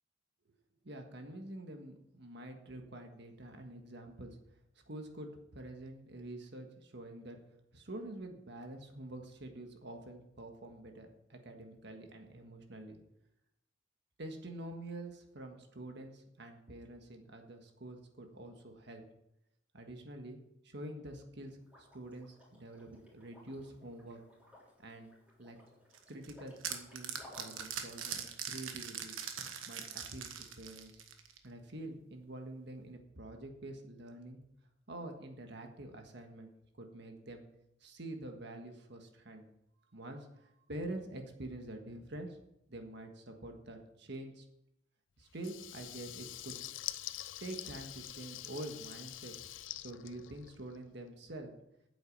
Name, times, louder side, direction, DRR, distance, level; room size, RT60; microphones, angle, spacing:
voice 1, 0.8-4.4 4.9-7.4 7.7-13.0 14.2-19.0 19.7-20.4 20.6-24.2 24.8-25.1 25.4-25.6 26.1-29.2 29.7-31.0 31.4-34.4 34.9-36.5 36.8-37.4 37.8-39.5 39.9-42.4 42.7-44.4 45.2-46.6 47.4-49.3 49.7-51.5, right 1 dB, 60° right, 4 dB, 1.6 m, -47 dB
Liquid, 21.6-27.7, left 1 dB, 5° right, 3.8 m, -59 dB
sound 1, 25.9-31.5, right 8 dB, 85° right, 1.4 m, -42 dB
Water tap faucet / Liquid, 45.3-50.9, left 14 dB, 70° left, 0.5 m, -45 dB
9.4 x 8.0 x 7.3 m, 0.81 s
head